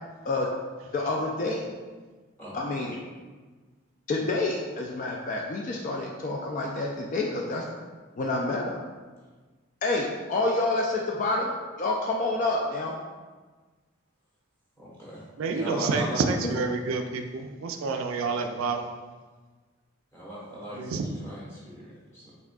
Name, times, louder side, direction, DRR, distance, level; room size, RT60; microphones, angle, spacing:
voice 1, 0.9-1.7 2.5-3.0 4.1-7.6 8.2-8.8 9.8-11.5 11.8-13.0, left 2 dB, 35° left, -1 dB, 0.3 m, -28 dB
voice 2, 14.8-15.2 15.5-16.7 20.1-22.3, equal, 10° left, -7 dB, 1.3 m, -38 dB
voice 3, 15.4-18.8 20.8-21.1, right 4 dB, 70° right, 5 dB, 0.3 m, -28 dB
4.7 x 3.5 x 2.3 m, 1.4 s
head